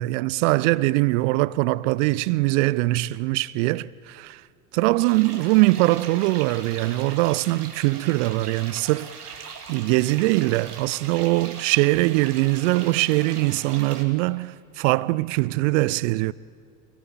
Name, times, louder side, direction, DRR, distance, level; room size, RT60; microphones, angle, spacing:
voice 1, 0.0-4.4 4.7-9.1 9.7-16.3, right 20 dB, 55° right, 0.7 m, -22 dB
sound 1, 5.0-14.0, right 5 dB, 80° right, 2.7 m, -40 dB
27.0 x 19.0 x 8.9 m
figure-of-eight pair, 75°, 45 cm